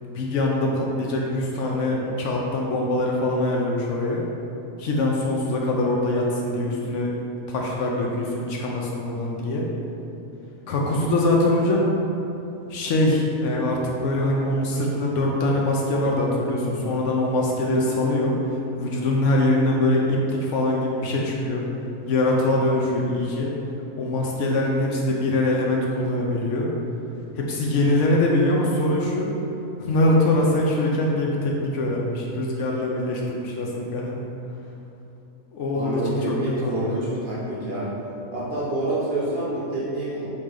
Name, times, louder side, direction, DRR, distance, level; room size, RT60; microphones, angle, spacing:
voice 1, 0.0-4.2 4.8-7.2 7.5-9.6 10.7-11.9 12.7-18.3 18.8-21.7 22.0-23.5 24.0-26.7 27.3-29.3 29.8-34.2 35.5-36.4 36.6-37.0, left 1 dB, 70° left, -2 dB, 0.8 m, -23 dB
voice 2, 35.7-37.9 38.3-40.3, right 1 dB, 50° right, -7 dB, 0.7 m, -27 dB
4.1 x 3.7 x 3.3 m, 2.9 s
omnidirectional pair, 1.5 m